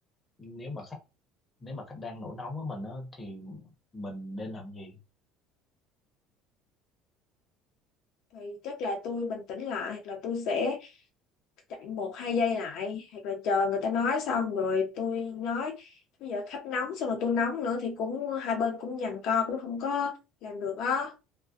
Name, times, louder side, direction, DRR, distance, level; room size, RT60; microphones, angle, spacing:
voice 1, 0.4-1.0 1.6-5.0, left 2 dB, 20° left, 0.8 m, -39 dB
voice 2, 8.3-10.9 11.7-15.9 16.2-20.1 20.4-21.1, left 5 dB, 65° left, 0.6 m, -30 dB
2.5 x 2.1 x 2.3 m
cardioid pair, 120°, 0 cm